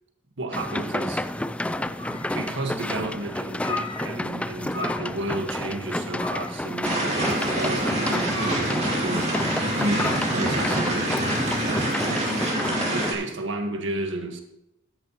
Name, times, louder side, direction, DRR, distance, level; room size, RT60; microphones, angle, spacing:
voice 1, 0.4-1.2 1.8-11.2 11.6-12.5 12.9-14.4, right 2 dB, 65° right, 4 dB, 1.6 m, -32 dB
sound 1, 0.5-13.1, left 1 dB, 5° left, 0.3 m, -30 dB
sound 2, 1.9-2.7 3.0-3.1 3.5-4.4 4.7-5.3 5.6-5.7 6.1-6.6 7.1-10.7, left 3 dB, 25° left, 1.1 m, -37 dB
sound 3, 6.8-13.1, right 1 dB, 35° right, 2.8 m, -26 dB
14.0 x 11.0 x 3.1 m, 0.86 s
head